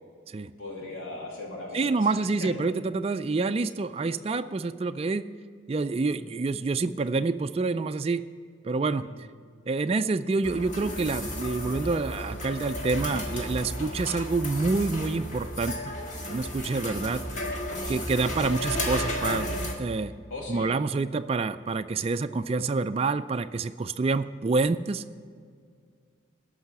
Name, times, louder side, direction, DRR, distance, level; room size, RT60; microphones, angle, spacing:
voice 1, 0.6-2.5 9.0-9.1 17.3-17.7 20.3-20.7, left 2 dB, 75° left, -2 dB, 2.7 m, -39 dB
voice 2, 1.7-5.2 5.7-8.2 8.6-9.1 9.7-15.9 16.3-17.2 17.9-20.1 20.5-25.2, right 3 dB, 30° right, 9 dB, 0.3 m, -27 dB
sound 1, 10.4-19.7, equal, 35° left, 1.7 m, -33 dB
14.0 x 5.6 x 8.4 m, 2.1 s
head